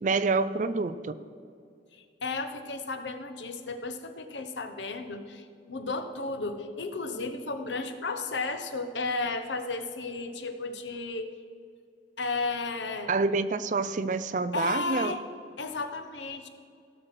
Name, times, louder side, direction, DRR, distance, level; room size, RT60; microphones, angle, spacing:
voice 1, 0.0-1.2 13.1-15.2, right 3 dB, 45° right, 14 dB, 0.4 m, -27 dB
voice 2, 1.9-11.3 12.2-13.1 14.5-15.2 15.6-16.5, left 3 dB, 85° left, 8 dB, 1.0 m, -33 dB
16.5 x 6.5 x 5.9 m, 2.3 s
head